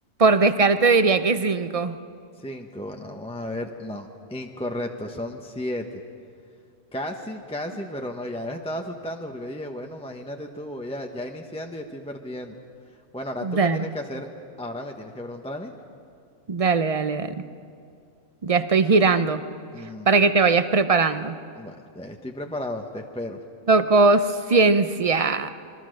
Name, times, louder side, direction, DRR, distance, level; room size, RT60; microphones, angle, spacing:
voice 1, 0.2-2.0 13.4-13.9 16.5-17.5 18.4-19.4 20.1-21.4 23.7-25.5, right 4 dB, 35° right, 11 dB, 0.6 m, -20 dB
voice 2, 2.4-6.0 6.9-12.6 13.1-14.3 14.6-15.7 19.7-20.1 21.6-23.4, left 1 dB, 5° left, 3 dB, 0.9 m, -34 dB
26.0 x 22.0 x 6.5 m, 2.3 s
omnidirectional pair, 1.3 m